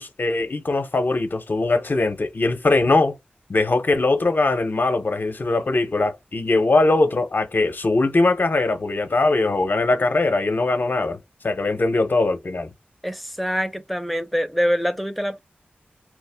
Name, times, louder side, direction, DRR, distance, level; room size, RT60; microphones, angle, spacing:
voice 1, 0.0-3.2 3.5-11.2 11.4-12.7, left 2 dB, 60° left, 0.7 m, -21 dB
voice 2, 13.0-15.4, equal, ahead, 0.7 m, -24 dB
3.1 x 2.1 x 3.3 m
cardioid pair, 40°, 4 cm